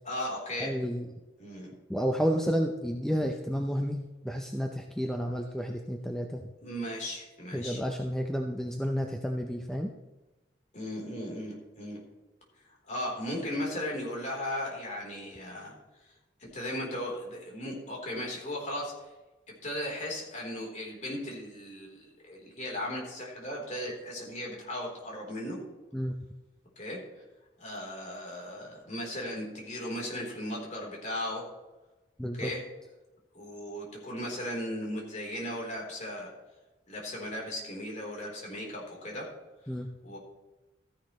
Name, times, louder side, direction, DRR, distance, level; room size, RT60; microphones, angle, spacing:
voice 1, 0.1-0.8 1.4-1.7 6.6-7.8 10.7-12.0 12.9-15.7 16.4-19.1 19.5-25.6 26.8-27.2 27.6-31.5 32.4-32.6 33.3-36.3 36.9-39.3 40.0-40.2, left 1 dB, 40° left, -2 dB, 3.7 m, -37 dB
voice 2, 0.6-1.1 1.9-6.5 7.5-9.9 25.9-26.2 32.2-32.5 39.7-39.9, equal, 5° left, 3 dB, 0.6 m, -31 dB
14.0 x 10.5 x 3.2 m, 1.1 s
head